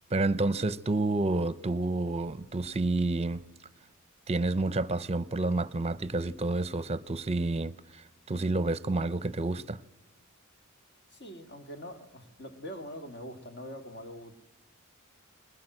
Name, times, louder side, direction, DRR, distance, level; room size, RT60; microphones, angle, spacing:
voice 1, 0.1-3.4 4.3-9.8, right 2 dB, 30° right, 0.7 m, -29 dB
voice 2, 11.1-14.3, equal, 55° left, 2.1 m, -43 dB
21.0 x 20.0 x 7.9 m
head